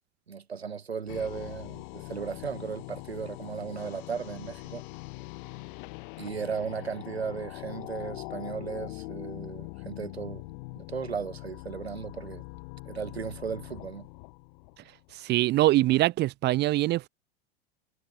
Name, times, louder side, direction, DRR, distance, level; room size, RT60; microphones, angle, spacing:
voice 1, 0.3-4.8 6.2-10.4 10.8-12.4 12.9-14.1, right 6 dB, 80° right, 2.8 m, -36 dB
sound 1, 1.1-15.2, left 29 dB, 50° left, 4.2 m, -42 dB
voice 2, 15.2-17.1, right 17 dB, 35° right, 1.0 m, -23 dB
figure-of-eight pair, 90°, 31 cm